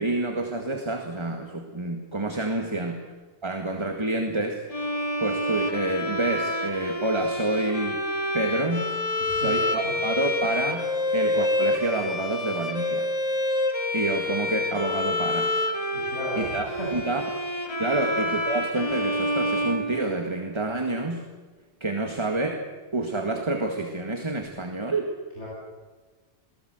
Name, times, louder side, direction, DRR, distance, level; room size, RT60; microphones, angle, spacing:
voice 1, 0.0-3.1 3.4-4.6 5.2-8.0 8.3-8.9 9.3-10.9 11.1-13.1 13.9-15.5 16.4-17.2 17.8-21.2 21.8-22.6 22.9-25.1, right 2 dB, 25° right, 4 dB, 2.0 m, -28 dB
Bowed string instrument, 4.7-20.6, left 1 dB, 30° left, 2.7 m, -28 dB
voice 2, 9.2-9.5 9.8-9.9 15.9-16.9 25.4-25.5, right 1 dB, 85° left, -6 dB, 7.5 m, -35 dB
28.5 x 19.0 x 8.0 m, 1.3 s
omnidirectional pair, 1.1 m